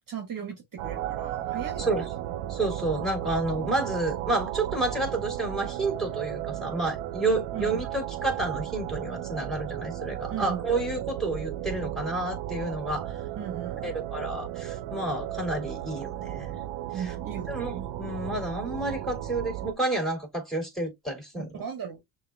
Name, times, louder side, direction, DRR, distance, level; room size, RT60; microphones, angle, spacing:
voice 1, 0.1-2.0 7.5-7.8 10.3-10.6 13.4-14.0 16.9-17.9 21.4-22.0, right 8 dB, 40° right, 1.2 m, -37 dB
sound 1, 0.8-19.7, right 12 dB, 80° right, 0.7 m, -35 dB
voice 2, 1.8-2.1 2.5-13.2 13.8-16.5 16.9-17.1 17.5-21.6, right 2 dB, ahead, 2.8 m, -30 dB
6.4 x 2.5 x 2.2 m
supercardioid pair, 75°, 49 cm